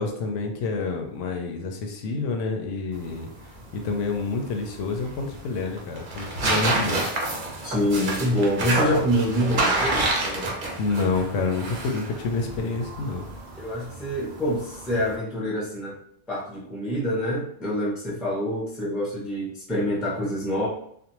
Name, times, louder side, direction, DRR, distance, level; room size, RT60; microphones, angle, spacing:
voice 1, 0.0-3.3 3.7-7.0 9.3-9.4 10.5-13.3, left 3 dB, 80° left, 3 dB, 0.9 m, -28 dB
sound 1, 2.9-15.2, right 2 dB, 55° right, 0.6 m, -29 dB
voice 2, 7.6-10.5 13.6-16.0 16.3-20.7, equal, ahead, -5 dB, 0.4 m, -26 dB
2.5 x 2.1 x 2.9 m, 0.69 s
omnidirectional pair, 1.3 m